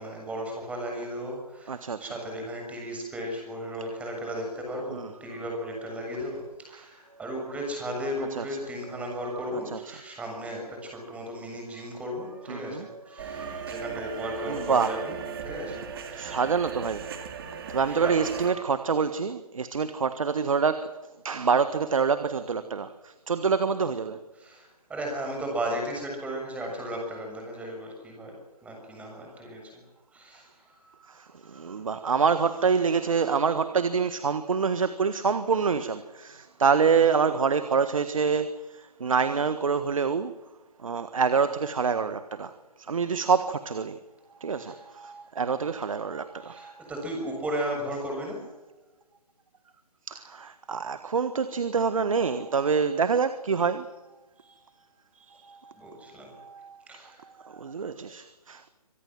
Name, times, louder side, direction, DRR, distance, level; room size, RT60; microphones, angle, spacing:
voice 1, 0.0-16.4 17.4-17.6 18.0-18.3 24.4-28.4 28.6-29.8 30.1-30.5 30.8-30.9 31.6-31.7 44.6-44.8 46.5-48.4 54.4-54.5 55.7-56.3 56.9-57.2, equal, 5° right, 1 dB, 6.8 m, -35 dB
voice 2, 1.7-2.1 4.9-5.4 6.1-6.3 6.7-6.9 8.2-8.6 9.1-9.9 12.5-13.7 14.4-15.0 15.5-15.6 16.0-24.2 31.0-40.3 40.8-44.0 44.4-46.8 50.1-53.9 55.1-58.7, right 5 dB, 60° right, 12 dB, 1.6 m, -27 dB
sound 1, 13.2-18.5, right 6 dB, 35° right, 3.1 m, -37 dB
26.0 x 18.5 x 7.7 m, 1.2 s
figure-of-eight pair, 145°, 20 cm